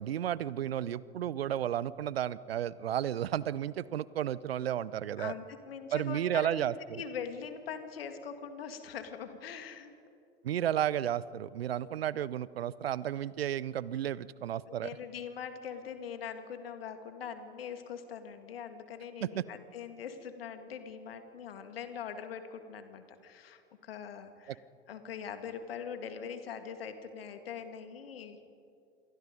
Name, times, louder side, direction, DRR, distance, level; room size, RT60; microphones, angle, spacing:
voice 1, 0.0-5.3 5.9-7.0 10.4-15.0 19.2-19.4, right 11 dB, 75° right, 20 dB, 0.7 m, -33 dB
voice 2, 5.2-9.9 11.8-11.9 14.7-24.6 24.9-28.5, left 7 dB, 70° left, 8 dB, 2.2 m, -42 dB
28.0 x 23.0 x 5.3 m, 2.5 s
figure-of-eight pair, 80°, 31 cm